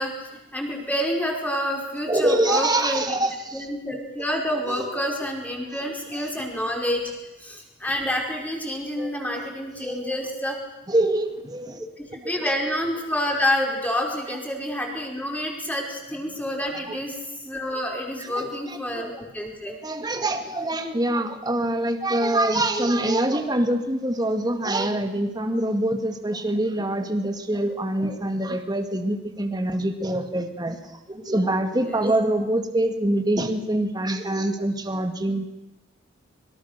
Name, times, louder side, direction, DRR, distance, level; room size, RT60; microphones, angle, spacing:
voice 1, 0.0-3.2 3.5-7.0 7.4-10.6 12.0-19.8 31.8-32.0, equal, 10° left, 0 dB, 5.2 m, -28 dB
voice 2, 2.1-3.7 4.8-4.9 9.0-9.5 10.9-11.8 16.9-17.0 18.2-19.1 19.8-30.8 31.1-35.5, right 1 dB, 20° right, 6 dB, 2.1 m, -25 dB
25.5 x 23.5 x 6.8 m, 1.0 s
head